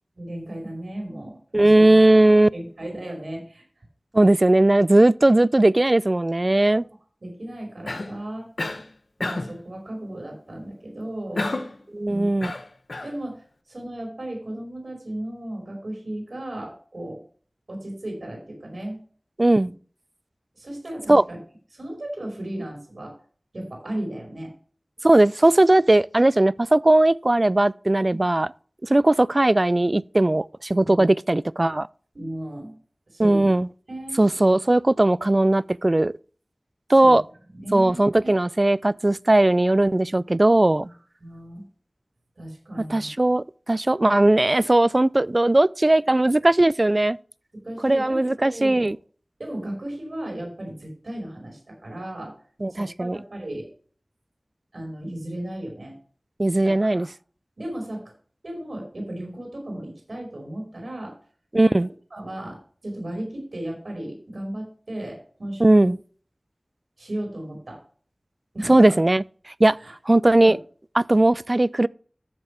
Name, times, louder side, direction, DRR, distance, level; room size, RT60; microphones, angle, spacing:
voice 1, 0.1-2.0 2.5-3.6 6.7-6.8 7.2-8.5 9.2-11.5 12.1-12.3 13.0-17.2 17.7-19.0 20.5-21.4 21.7-23.1 23.5-24.5 28.1-28.2 30.8-31.0 32.1-32.7 33.1-33.5 33.9-34.2 37.0-37.2 37.5-38.3 40.8-40.9 41.2-41.6 42.4-43.1 47.6-48.9 49.4-52.3 52.7-53.7 54.7-55.9 56.6-57.1 57.6-58.1 58.4-61.1 62.1-65.9 67.0-67.8 68.5-69.0 69.8-69.9 70.4-70.5, right 1 dB, 80° right, 5.1 m, -35 dB
voice 2, 1.5-2.5 4.1-6.8 11.9-12.5 19.4-19.7 21.1-21.2 25.0-28.5 28.8-31.9 33.2-33.7 34.2-36.1 36.9-37.2 37.7-40.9 42.9-47.2 47.8-49.0 52.6-53.2 56.4-57.1 61.5-61.9 65.6-66.0 68.7-69.2 69.6-69.8 70.1-70.6 71.0-71.9, right 1 dB, 40° right, 0.3 m, -18 dB
Cough, 7.9-8.2 8.6-8.9 9.2-9.6 11.4-11.8 12.4-13.1, left 2 dB, 75° left, 1.0 m, -30 dB
13.0 x 7.1 x 3.4 m
wide cardioid pair, 55°, 0 cm